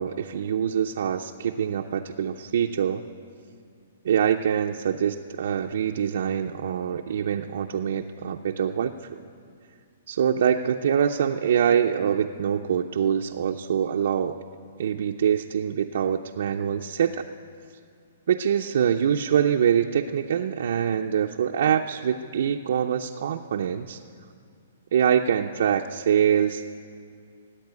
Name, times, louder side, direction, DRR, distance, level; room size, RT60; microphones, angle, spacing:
voice 1, 0.0-3.0 4.0-9.2 10.1-14.4 14.8-17.2 18.3-24.0 24.9-26.6, right 8 dB, 60° right, 2 dB, 0.5 m, -24 dB
16.5 x 8.4 x 9.6 m, 2.2 s
hypercardioid pair, 165°, 0 cm